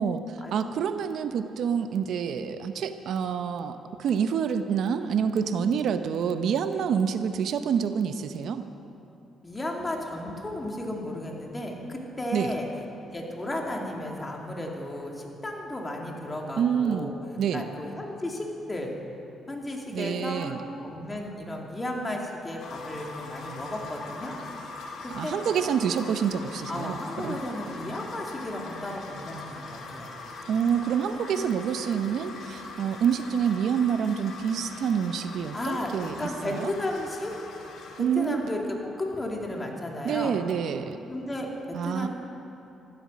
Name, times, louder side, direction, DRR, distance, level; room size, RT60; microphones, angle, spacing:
voice 1, 0.0-8.6 12.3-12.5 16.6-17.6 19.9-20.6 25.1-27.4 30.5-36.7 38.0-38.4 40.0-41.0 41.7-42.1, right 7 dB, 70° right, 9 dB, 0.7 m, -27 dB
voice 2, 5.0-5.8 9.4-12.7 13.1-17.1 17.5-18.9 19.5-24.3 25.0-25.3 26.7-30.1 35.5-37.4 38.0-38.6 39.0-40.4 41.1-42.1, left 1 dB, 20° left, 0 dB, 2.4 m, -34 dB
sound 1, 22.6-38.0, left 3 dB, 75° left, 2.4 m, -42 dB
14.5 x 12.5 x 6.3 m, 2.9 s
cardioid pair, 90°, 0 cm